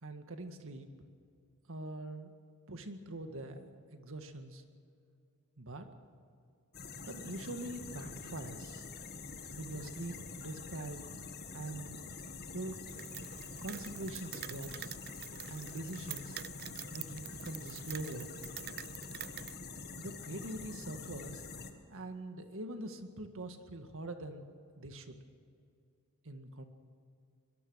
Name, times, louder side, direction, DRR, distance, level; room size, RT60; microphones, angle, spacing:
voice 1, 0.0-0.9 1.7-2.3 2.7-4.6 5.6-5.9 7.0-8.9 9.6-11.0 11.5-12.0 12.5-12.8 13.6-14.9 15.5-16.4 16.9-18.3 20.0-21.4 21.9-24.5 24.8-25.2 26.2-26.6, right 2 dB, 65° right, 7 dB, 1.9 m, -43 dB
sound 1, 6.7-21.7, left 4 dB, 45° left, 1.8 m, -46 dB
sound 2, 12.9-19.6, right 13 dB, 45° right, 0.4 m, -47 dB
23.5 x 21.5 x 6.5 m, 2.3 s
head